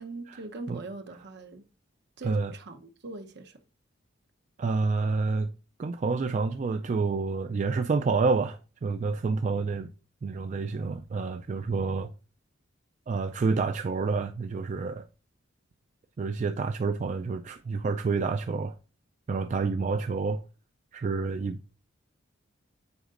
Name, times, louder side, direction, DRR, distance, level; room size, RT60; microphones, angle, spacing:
voice 1, 0.0-1.6 2.2-3.6, right 2 dB, 55° right, 0.9 m, -41 dB
voice 2, 4.6-5.5 5.8-9.9 10.2-12.1 13.1-15.0 16.2-18.7 19.3-20.4 20.9-21.6, right 4 dB, 40° right, 0.3 m, -28 dB
8.0 x 5.0 x 2.5 m
head